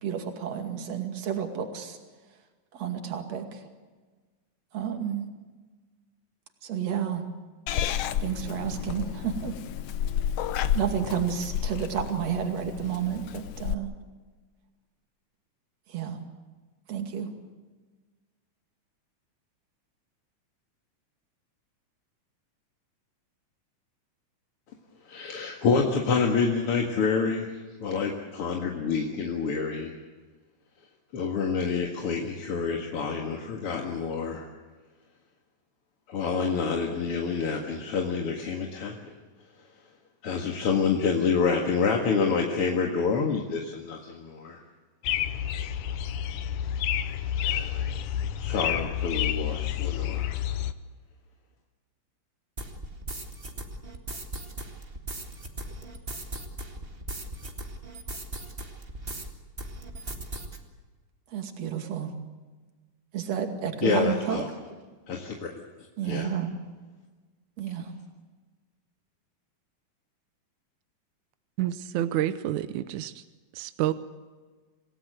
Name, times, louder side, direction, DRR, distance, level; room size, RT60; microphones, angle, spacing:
voice 1, 0.0-2.0 2.7-3.6 4.7-5.3 6.6-7.2 8.2-9.5 10.7-13.9 15.9-16.2 16.9-17.3 61.3-62.1 63.1-64.5 66.0-66.5 67.6-67.9, right 8 dB, 55° right, 5 dB, 3.4 m, -31 dB
Purr / Meow, 7.7-13.7, left 10 dB, 65° left, 1.6 m, -31 dB
voice 2, 25.0-30.0 31.1-34.5 36.1-39.1 40.2-44.6 45.5-45.7 47.4-48.0 48.4-50.3 63.8-64.5 65.1-65.5 66.0-66.3, left 5 dB, 50° left, 1 dB, 2.5 m, -28 dB
sound 1, 45.0-50.7, left 10 dB, 80° left, 2.4 m, -29 dB
sound 2, 52.6-59.3 59.6-60.6, right 1 dB, 20° right, 1.9 m, -38 dB
voice 3, 71.6-73.2 73.5-73.9, right 13 dB, 75° right, 12 dB, 2.1 m, -28 dB
28.0 x 17.5 x 7.8 m, 1.4 s
omnidirectional pair, 3.6 m